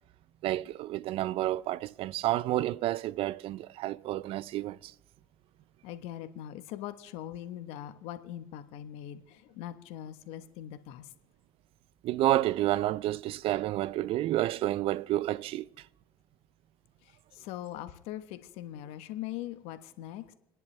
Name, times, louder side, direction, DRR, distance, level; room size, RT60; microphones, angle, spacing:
voice 1, 0.4-4.9 12.0-15.7, right 14 dB, 60° right, 0.5 m, -30 dB
voice 2, 5.8-11.1 17.0-20.3, left 12 dB, 70° left, 1.2 m, -41 dB
29.5 x 10.5 x 3.3 m
hypercardioid pair, 65°, 11 cm